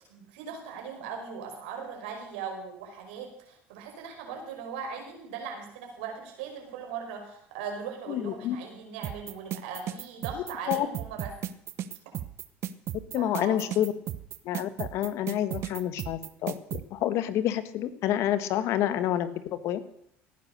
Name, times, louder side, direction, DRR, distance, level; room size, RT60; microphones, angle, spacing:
voice 1, 0.1-11.3 13.2-13.6, right 6 dB, 85° right, 2 dB, 5.2 m, -39 dB
voice 2, 8.1-8.6 10.7-10.9 13.1-13.9 14.4-19.8, left 12 dB, 65° left, 13 dB, 1.6 m, -28 dB
sound 1, 9.0-16.8, right 11 dB, 55° right, 1.1 m, -35 dB
18.0 x 10.5 x 6.7 m, 0.72 s
supercardioid pair, 95°, 5 cm